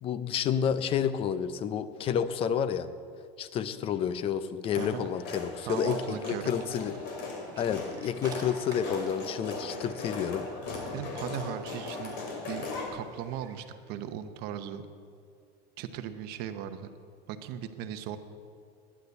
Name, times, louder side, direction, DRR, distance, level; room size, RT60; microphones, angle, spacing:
voice 1, 0.0-2.9 3.4-7.0 7.6-10.5, left 8 dB, 25° left, 13 dB, 0.5 m, -30 dB
sound 1, 4.7-12.9, left 3 dB, 55° left, 2.5 m, -38 dB
voice 2, 4.8-5.1 5.6-6.5 10.9-12.2 12.4-14.8 15.8-16.9 17.3-18.2, right 9 dB, 50° right, 9 dB, 0.8 m, -38 dB
sound 2, 5.4-13.7, right 4 dB, 20° right, 1.8 m, -53 dB
9.9 x 9.4 x 8.1 m, 2.3 s
cardioid pair, 165°, 21 cm